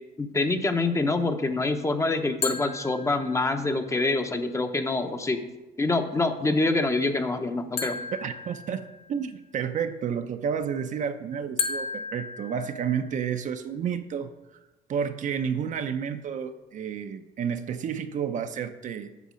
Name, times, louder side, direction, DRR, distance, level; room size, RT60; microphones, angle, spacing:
voice 1, 0.2-5.4 5.8-8.0, left 2 dB, 15° left, 8 dB, 0.7 m, -26 dB
sound 1, 2.4-3.7 7.8-9.3 11.6-13.3, left 5 dB, 35° left, 1.1 m, -34 dB
voice 2, 8.2-8.8 9.1-14.3 14.9-19.1, right 7 dB, 50° right, 8 dB, 0.5 m, -30 dB
8.3 x 6.1 x 5.0 m, 1.0 s
cardioid pair, 110°, 17 cm